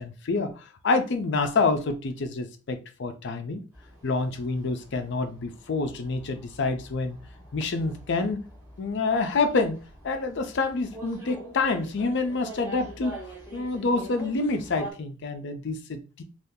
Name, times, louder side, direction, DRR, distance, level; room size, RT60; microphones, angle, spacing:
voice 1, 0.0-3.6 4.0-7.2 7.5-8.4 8.8-9.8 10.0-13.2 13.5-16.2, left 3 dB, 60° left, 0.5 m, -27 dB
sound 1, 3.7-14.9, right 1 dB, 10° right, 1.4 m, -44 dB
3.6 x 2.4 x 2.6 m
head